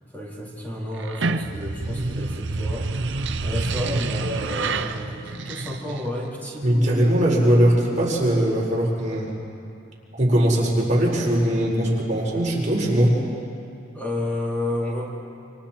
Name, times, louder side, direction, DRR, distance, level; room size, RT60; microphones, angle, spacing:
voice 1, 0.1-7.1 13.9-15.1, left 1 dB, 10° left, -6 dB, 4.0 m, -31 dB
sound 1, 1.0-6.3, right 3 dB, 70° right, 0.8 m, -28 dB
voice 2, 6.6-9.3 10.1-13.2, right 1 dB, 40° right, -4 dB, 4.6 m, -20 dB
28.5 x 26.5 x 4.5 m, 2.5 s
head